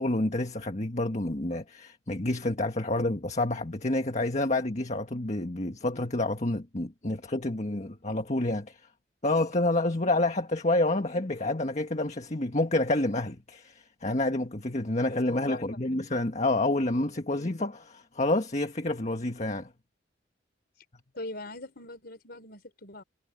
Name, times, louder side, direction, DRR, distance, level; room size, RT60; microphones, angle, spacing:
voice 1, 0.0-8.8 9.2-19.7, left 2 dB, 40° left, 1.6 m, -28 dB
voice 2, 21.1-23.0, left 2 dB, 55° left, 4.8 m, -41 dB
head